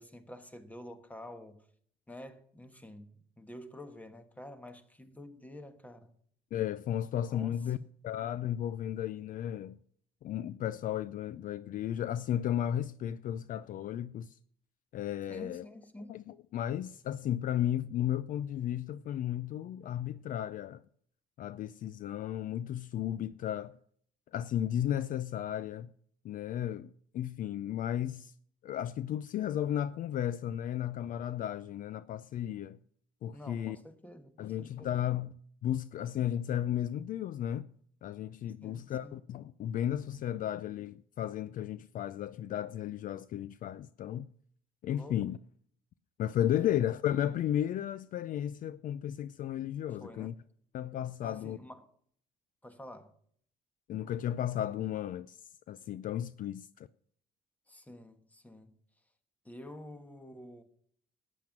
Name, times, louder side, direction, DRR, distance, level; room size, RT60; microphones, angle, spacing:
voice 1, 0.0-1.6 2.1-3.1 3.4-6.1 7.2-7.9 15.3-16.1 33.3-34.9 38.6-39.2 44.9-45.2 46.5-46.8 50.0-50.3 51.2-51.8 52.6-53.1 57.7-58.7 59.4-60.6, left 1 dB, 10° left, 1.3 m, -49 dB
voice 2, 6.5-7.8 8.0-9.8 10.2-14.4 14.9-15.6 16.1-20.8 21.4-23.7 24.3-25.9 26.2-28.3 28.6-32.8 33.2-33.8 34.4-35.3 35.6-37.7 38.0-44.3 44.8-45.4 46.2-50.3 50.7-51.6 53.9-55.4 55.7-56.9, left 11 dB, 55° left, 0.4 m, -34 dB
12.0 x 9.0 x 6.0 m
cardioid pair, 110°, 17 cm